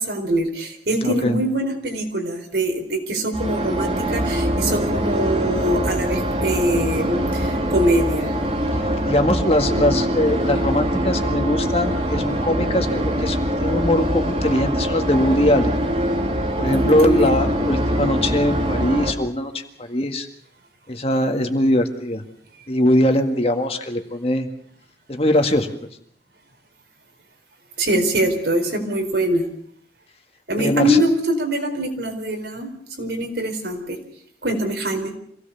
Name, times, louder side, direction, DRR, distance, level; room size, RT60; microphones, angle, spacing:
voice 1, 0.0-8.3 16.7-17.4 27.8-29.5 30.5-32.7 33.0-34.0 34.4-35.1, right 1 dB, 75° right, 4 dB, 4.4 m, -23 dB
voice 2, 1.0-1.4 8.7-15.7 16.6-20.3 20.9-22.2 22.7-24.5 25.1-25.7 30.6-31.0, left 1 dB, 35° left, 5 dB, 1.9 m, -21 dB
sound 1, 3.3-19.1, equal, 35° right, 2.5 m, -23 dB
26.0 x 17.5 x 7.0 m, 0.65 s
head